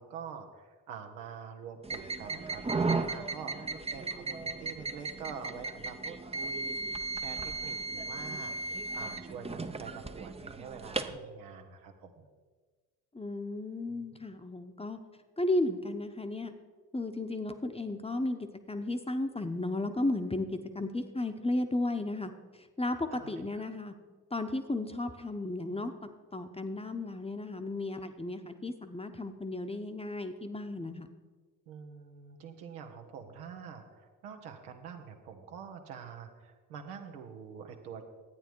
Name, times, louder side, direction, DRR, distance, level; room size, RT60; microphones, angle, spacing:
voice 1, 0.0-6.8 7.1-12.3 14.0-14.2 23.1-23.7 31.7-38.0, right 6 dB, 80° right, 4 dB, 1.1 m, -46 dB
sound 1, 1.8-11.2, right 3 dB, 15° right, 0.6 m, -36 dB
voice 2, 13.1-15.0 15.4-16.5 16.9-20.5 20.7-22.3 22.8-23.9 24.3-25.9 26.3-31.1, left 2 dB, 15° left, 7 dB, 0.9 m, -34 dB
11.5 x 9.1 x 4.6 m, 1.4 s
hypercardioid pair, 45°, 45 cm